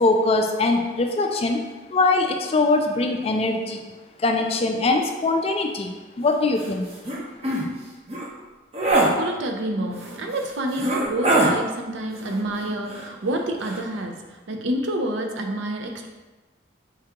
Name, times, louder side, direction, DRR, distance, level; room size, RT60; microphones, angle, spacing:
voice 1, 0.0-1.6 1.9-3.8 4.2-6.9, left 3 dB, 30° left, 4 dB, 0.3 m, -22 dB
sound 1, 6.6-6.7 7.0-7.2 7.4-7.6 8.1-8.3 8.7-9.1 10.0-10.1 10.7-11.5 12.9-13.3 13.6-13.8, right 2 dB, 35° right, 0.7 m, -22 dB
voice 2, 9.1-14.1 14.5-16.1, right 1 dB, 70° right, 3 dB, 0.6 m, -28 dB
4.6 x 2.8 x 3.5 m, 1.2 s
head